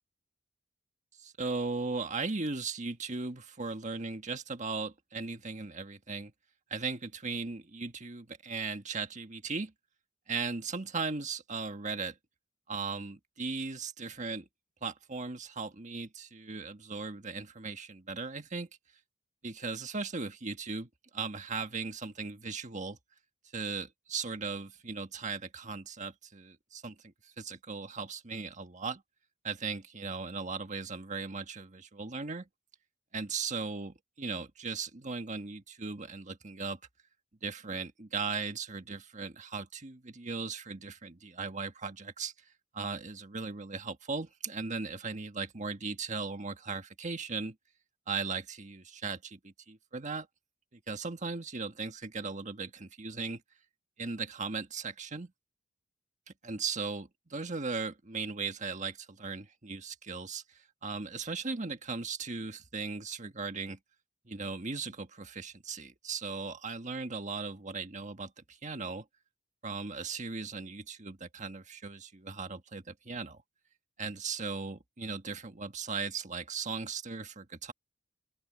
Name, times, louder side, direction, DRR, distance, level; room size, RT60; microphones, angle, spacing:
voice 1, 1.2-6.3 6.7-9.7 10.3-12.1 12.7-14.5 14.8-18.7 19.4-23.0 23.5-29.0 29.4-32.5 33.1-36.8 37.4-42.3 42.7-47.5 48.1-50.3 50.7-53.4 54.0-55.3 56.4-60.4 60.8-63.8 64.2-69.0 69.6-73.4 74.0-77.7, right 4 dB, 35° right, 1.5 m, -37 dB
open air
head